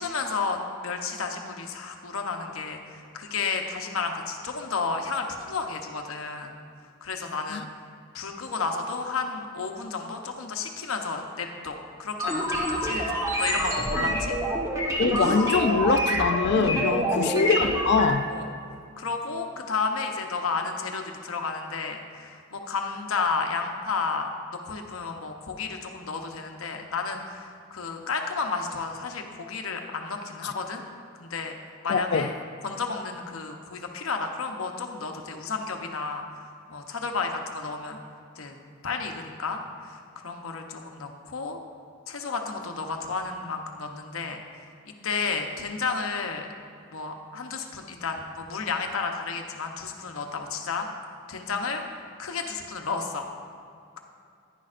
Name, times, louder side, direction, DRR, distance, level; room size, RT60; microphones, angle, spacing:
voice 1, 0.0-6.5 7.0-7.7 8.1-14.4 16.9-17.3 18.3-18.5 19.0-30.8 31.2-31.5 31.8-32.3 32.6-36.2 36.7-38.0 38.4-38.6 38.8-40.0 40.2-41.6 42.1-44.4 44.9-46.5 46.9-50.9 51.3-51.8 52.2-53.3, left 4 dB, 85° left, 4 dB, 0.9 m, -32 dB
sound 1, 12.2-18.1, equal, 15° right, 1.1 m, -26 dB
voice 2, 15.0-18.3 31.9-32.3, left 5 dB, 55° left, 9 dB, 0.4 m, -23 dB
10.5 x 10.0 x 2.5 m, 2.4 s
head